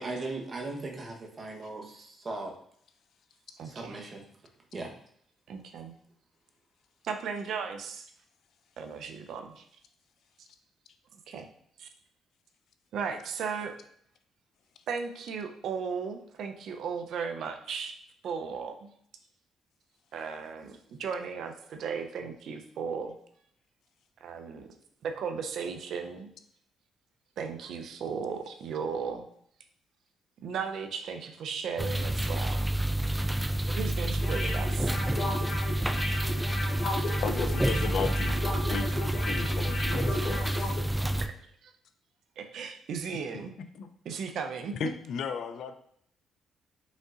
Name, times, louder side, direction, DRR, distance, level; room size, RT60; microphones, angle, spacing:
voice 1, 0.0-2.5 3.6-4.2 4.7-4.9, right 2 dB, 35° right, 1 dB, 1.0 m, -38 dB
voice 2, 3.6-4.0 5.5-5.9 7.0-8.1 8.8-9.6 11.3-11.5 11.8-11.9 12.9-13.8 14.9-17.9 18.2-18.9 20.1-23.1 24.2-24.7 25.0-26.3 27.4-29.3 30.4-32.6 33.7-34.9 36.8-37.1 41.2-41.3 41.6-41.7 42.4-43.5 44.1-44.8, right 6 dB, 70° right, 6 dB, 0.5 m, -36 dB
sound 1, 31.8-41.3, right 1 dB, 10° right, 0.3 m, -29 dB
sound 2, 34.2-40.8 41.1-41.2, left 2 dB, 50° left, 1.4 m, -35 dB
voice 3, 37.2-38.4 38.7-40.8 43.7-43.9 44.7-45.7, left 6 dB, 70° left, 8 dB, 0.4 m, -35 dB
5.2 x 3.8 x 2.5 m, 0.65 s
cardioid pair, 90°, 0 cm